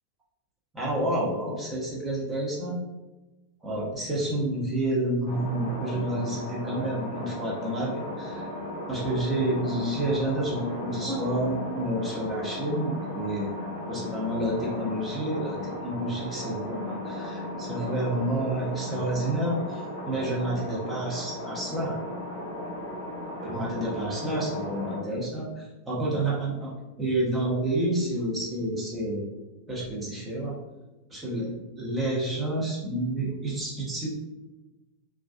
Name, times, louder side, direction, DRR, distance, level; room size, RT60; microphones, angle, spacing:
voice 1, 0.7-2.8 3.6-13.5 13.9-22.0 23.4-26.7 27.0-29.2 29.7-30.5 31.1-34.1, right 1 dB, 15° right, -6 dB, 0.8 m, -29 dB
sound 1, 5.3-25.0, left 1 dB, 60° right, 1.1 m, -36 dB
2.3 x 2.2 x 2.4 m, 1.1 s
figure-of-eight pair, 90°, 0 cm